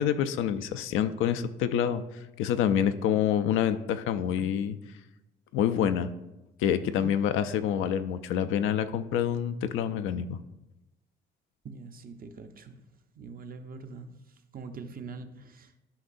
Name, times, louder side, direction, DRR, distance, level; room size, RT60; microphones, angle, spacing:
voice 1, 0.0-2.0 2.4-4.8 5.5-6.1 6.6-10.4, left 9 dB, 90° left, 10 dB, 0.4 m, -27 dB
voice 2, 11.6-12.8 13.2-15.9, right 4 dB, 45° right, 7 dB, 0.7 m, -44 dB
11.5 x 5.3 x 2.5 m, 0.97 s
cardioid pair, 90°, 20 cm